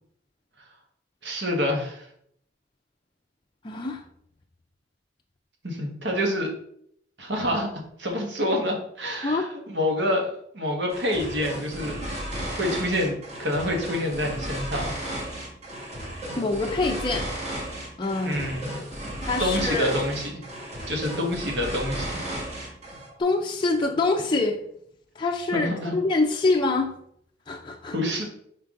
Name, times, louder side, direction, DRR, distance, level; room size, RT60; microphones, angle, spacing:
voice 1, 1.2-2.1 5.6-6.5 7.2-7.7 8.0-12.0 12.5-14.9 18.2-18.8 19.4-20.4 20.9-22.2 25.5-25.9 27.9-28.2, left 1 dB, 65° right, 2 dB, 1.4 m, -27 dB
voice 2, 3.6-4.0 9.2-9.5 16.4-17.3 18.0-18.6 19.2-19.9 23.2-24.6 25.2-26.9 27.5-27.9, left 3 dB, 25° left, 0 dB, 0.5 m, -25 dB
sound 1, 10.9-23.1, right 1 dB, 35° right, 1.5 m, -34 dB
5.8 x 4.5 x 3.7 m, 0.70 s
head